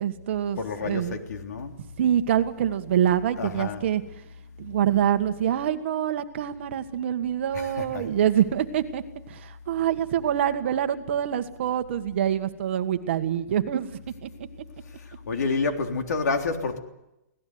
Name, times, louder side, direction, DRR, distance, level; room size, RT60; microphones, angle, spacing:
voice 1, 0.0-1.2 1.8-4.0 4.6-14.3, right 10 dB, 45° right, 9 dB, 1.6 m, -25 dB
voice 2, 0.6-1.7 3.4-3.8 7.5-8.1 15.3-16.8, left 4 dB, 85° left, 5 dB, 3.5 m, -29 dB
25.5 x 17.5 x 9.5 m, 0.93 s
hypercardioid pair, 175°, 9 cm